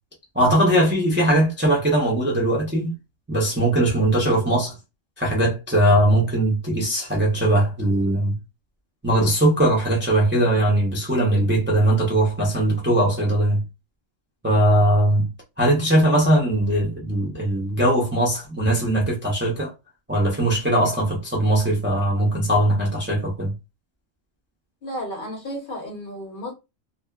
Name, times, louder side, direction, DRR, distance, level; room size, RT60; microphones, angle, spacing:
voice 1, 0.3-2.9 3.3-4.8 5.2-8.3 9.0-13.6 14.4-15.3 15.6-19.7 20.1-23.5, right 1 dB, 15° right, 0.4 m, -20 dB
voice 2, 24.8-26.5, equal, 50° left, 0.8 m, -33 dB
2.6 x 2.1 x 2.2 m
omnidirectional pair, 1.3 m